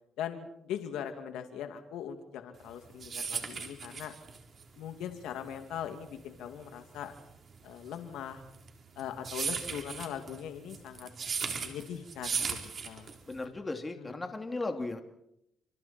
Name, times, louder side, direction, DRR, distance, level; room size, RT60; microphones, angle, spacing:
voice 1, 0.2-4.1 4.8-7.1 7.6-8.4 9.0-11.1 11.4-12.6 12.8-13.1 14.0-14.2, left 9 dB, 90° left, 7 dB, 2.4 m, -40 dB
sound 1, 2.6-13.4, right 6 dB, 50° right, 3.8 m, -37 dB
voice 2, 13.3-15.0, left 2 dB, 20° left, 5 dB, 2.8 m, -36 dB
30.0 x 26.5 x 4.4 m, 0.79 s
cardioid pair, 90°, 0 cm